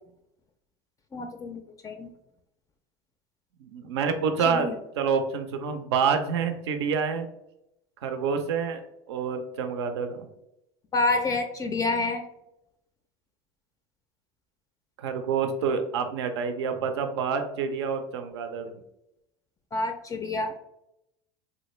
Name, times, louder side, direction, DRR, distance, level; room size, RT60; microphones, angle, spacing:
voice 1, 1.1-2.1 4.5-4.7 10.9-12.2 19.7-20.6, left 2 dB, 25° left, 6 dB, 0.3 m, -28 dB
voice 2, 3.6-4.7 5.0-7.3 8.0-8.8 9.1-10.3 15.0-18.7, right 6 dB, 80° right, 7 dB, 0.4 m, -27 dB
3.1 x 2.5 x 3.0 m, 0.83 s
hypercardioid pair, 90°, 14 cm